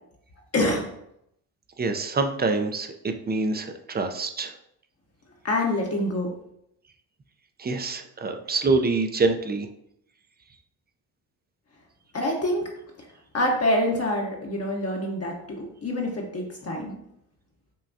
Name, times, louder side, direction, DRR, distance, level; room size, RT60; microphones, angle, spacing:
voice 1, 0.5-0.9 5.4-6.3 12.1-12.7 13.3-17.0, left 1 dB, 35° left, 0 dB, 0.9 m, -26 dB
voice 2, 1.8-2.9 3.3-4.5 7.6-9.7, right 3 dB, 25° right, 6 dB, 0.5 m, -25 dB
5.7 x 2.3 x 2.6 m, 0.76 s
supercardioid pair, 60°, 43 cm